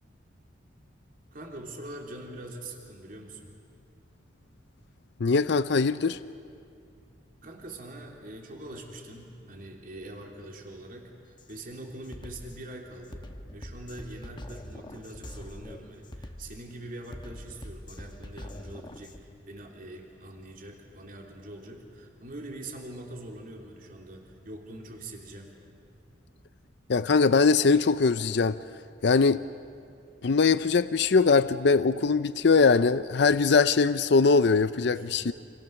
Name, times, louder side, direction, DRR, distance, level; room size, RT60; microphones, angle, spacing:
voice 1, 1.3-3.5 7.4-25.5 34.9-35.3, right 1 dB, 50° right, 1 dB, 3.3 m, -43 dB
voice 2, 5.2-6.2 26.9-28.6 29.0-29.4 30.2-35.3, left 4 dB, 65° left, 13 dB, 0.5 m, -22 dB
Drum kit, 11.4-11.6 12.0-19.2, left 1 dB, 25° left, 1.1 m, -44 dB
29.0 x 27.0 x 7.0 m, 2.4 s
head